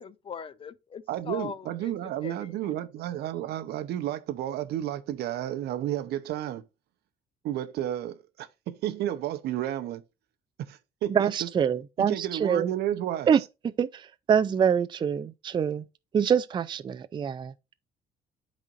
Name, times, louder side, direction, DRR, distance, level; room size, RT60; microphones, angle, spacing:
voice 1, 0.0-2.7, left 6 dB, 30° left, 0.5 m, -40 dB
voice 2, 1.1-6.6 7.4-10.0 10.7-11.5 12.0-13.3, right 12 dB, 75° right, 0.8 m, -32 dB
voice 3, 11.1-12.7 13.3-15.8 16.1-17.5, right 7 dB, 25° right, 0.4 m, -25 dB
12.5 x 4.2 x 2.5 m
cardioid pair, 110°, 17 cm